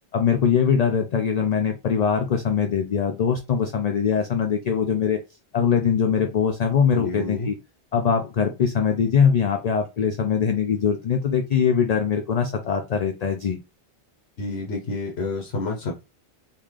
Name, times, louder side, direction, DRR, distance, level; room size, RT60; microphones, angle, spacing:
voice 1, 0.1-5.2 5.5-7.6 7.9-13.6, left 7 dB, 55° left, 0.4 m, -22 dB
voice 2, 6.9-7.5 14.4-16.1, left 3 dB, 75° left, 1.1 m, -29 dB
3.6 x 2.4 x 3.1 m
omnidirectional pair, 1.1 m